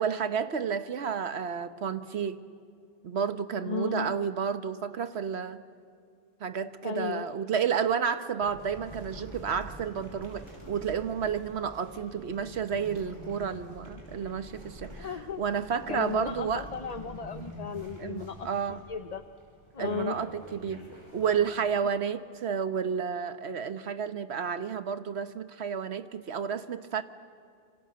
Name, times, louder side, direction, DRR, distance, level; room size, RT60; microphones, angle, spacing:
voice 1, 0.0-2.4 3.0-5.6 6.4-15.1 15.4-16.7 18.0-18.8 19.8-20.8 21.1-27.0, right 7 dB, 90° right, 11 dB, 1.3 m, -31 dB
voice 2, 3.6-4.1 6.8-7.3 15.0-15.4 15.9-19.2 19.7-20.2, left 5 dB, 40° left, 9 dB, 0.9 m, -35 dB
sound 1, 8.4-21.7, right 1 dB, 25° right, 5.6 m, -47 dB
27.0 x 25.5 x 7.7 m, 2.3 s
omnidirectional pair, 1.1 m